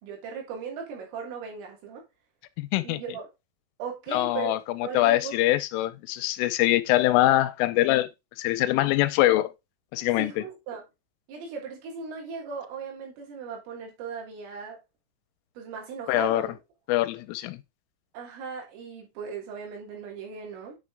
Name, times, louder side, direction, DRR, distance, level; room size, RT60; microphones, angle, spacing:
voice 1, 0.0-2.0 2.8-3.3 3.8-4.5 4.8-5.3 10.2-10.8 11.3-14.8 15.6-16.6 18.1-20.8, right 6 dB, 85° right, 5.6 m, -37 dB
voice 2, 2.6-3.0 4.1-8.1 8.4-9.5 9.9-10.4 16.1-16.5 16.9-17.6, left 16 dB, 90° left, 3.2 m, -23 dB
9.3 x 5.5 x 3.6 m
omnidirectional pair, 5.7 m